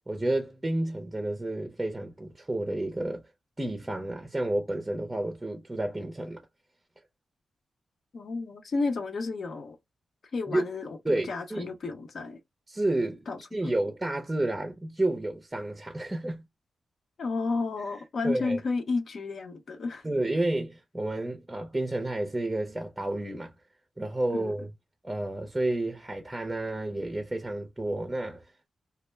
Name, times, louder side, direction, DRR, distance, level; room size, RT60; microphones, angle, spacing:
voice 1, 0.1-3.2 3.6-6.4 10.5-10.7 11.0-11.7 12.7-13.3 13.5-16.4 18.2-18.6 20.0-23.5 24.0-24.7 25.0-28.4, right 1 dB, 15° right, 0.5 m, -30 dB
voice 2, 8.1-9.8 10.3-12.4 13.3-13.4 17.2-20.0 24.3-24.5, left 3 dB, 65° left, 0.7 m, -32 dB
2.3 x 2.1 x 3.1 m
cardioid pair, 80°, 0 cm